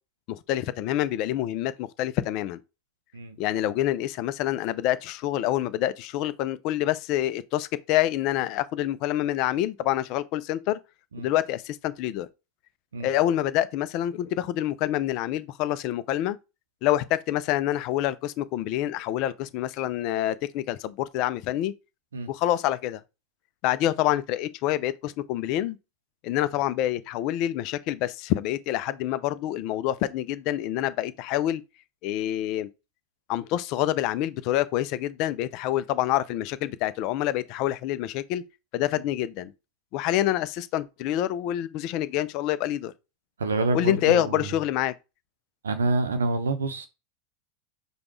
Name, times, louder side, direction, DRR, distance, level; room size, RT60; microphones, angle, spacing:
voice 1, 0.3-2.6 3.4-10.8 11.2-12.3 13.0-16.4 16.8-21.7 22.3-23.0 23.6-25.8 26.2-31.6 32.0-32.7 33.3-38.4 38.7-39.5 39.9-42.9 43.7-44.9, left 13 dB, 50° left, 0.4 m, -27 dB
voice 2, 43.4-44.5 45.6-46.9, right 3 dB, 85° right, 0.7 m, -27 dB
5.1 x 2.2 x 3.1 m
hypercardioid pair, 90°, 0 cm